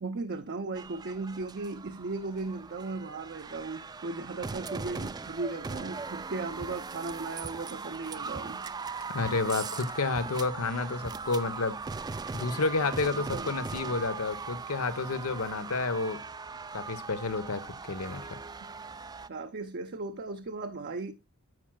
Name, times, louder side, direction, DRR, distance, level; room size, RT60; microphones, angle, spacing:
voice 1, 0.0-8.6 13.3-13.5 19.3-21.1, right 3 dB, 50° right, 0.6 m, -36 dB
sound 1, 0.8-19.3, right 4 dB, 20° right, 0.3 m, -39 dB
voice 2, 9.1-11.8 12.3-16.2 16.7-17.6 17.9-18.3, left 3 dB, 90° left, 1.0 m, -30 dB
10.5 x 7.5 x 2.2 m
head